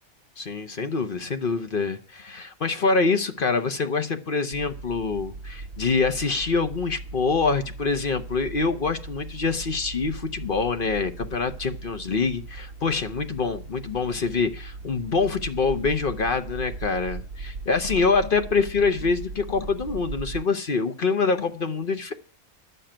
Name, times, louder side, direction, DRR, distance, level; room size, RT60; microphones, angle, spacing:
voice 1, 0.4-22.1, left 4 dB, 45° left, 8 dB, 0.9 m, -25 dB
sound 1, 4.5-20.4, right 3 dB, 70° right, 1.3 m, -39 dB
11.5 x 6.8 x 8.8 m, 0.42 s
omnidirectional pair, 1.4 m